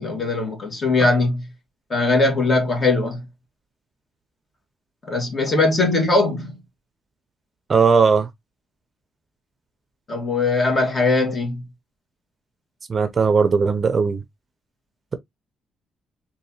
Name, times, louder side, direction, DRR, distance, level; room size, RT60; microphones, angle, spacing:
voice 1, 0.0-1.4 1.9-3.2 5.1-6.6 10.1-11.6, left 3 dB, 35° left, 1.7 m, -20 dB
voice 2, 7.7-8.3 12.9-14.2, right 5 dB, 35° right, 0.6 m, -18 dB
3.9 x 2.6 x 2.7 m
cardioid pair, 90°, 0 cm